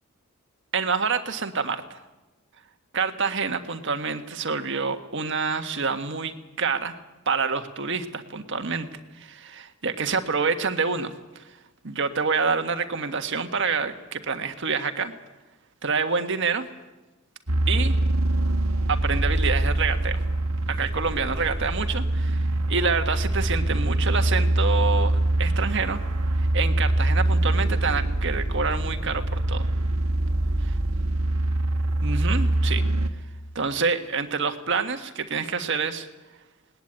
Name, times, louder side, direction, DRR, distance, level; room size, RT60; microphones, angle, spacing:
voice 1, 0.7-2.0 2.9-6.9 7.2-8.9 9.1-11.4 11.8-15.1 15.8-16.7 17.7-18.0 18.9-20.2 20.7-26.0 26.4-29.7 30.6-30.8 32.0-32.8 33.5-36.1, right 5 dB, 60° right, 7 dB, 1.5 m, -27 dB
sound 1, 17.5-33.1, right 1 dB, 80° right, 1.5 m, -24 dB
20.0 x 19.5 x 8.9 m, 1.1 s
head